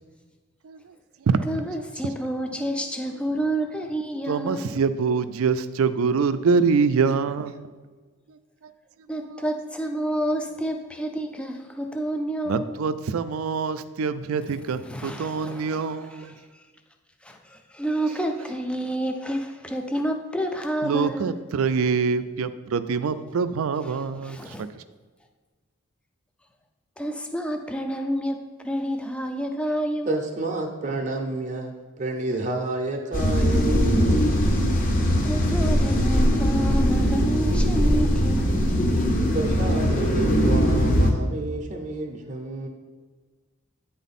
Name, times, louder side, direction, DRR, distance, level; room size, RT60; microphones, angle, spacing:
voice 1, 1.5-4.8 9.1-12.7 14.9-16.3 17.2-21.4 23.8-24.7 27.0-30.3 35.2-38.7, right 1 dB, 5° left, 4 dB, 0.4 m, -29 dB
voice 2, 4.3-7.7 9.3-9.4 12.5-16.3 20.8-24.7, right 5 dB, 75° right, 12 dB, 0.4 m, -25 dB
voice 3, 30.1-34.3 39.3-42.7, right 2 dB, 35° right, 1 dB, 0.6 m, -30 dB
sound 1, 33.1-41.1, equal, 40° left, 0.8 m, -21 dB
9.1 x 3.8 x 4.2 m, 1.4 s
head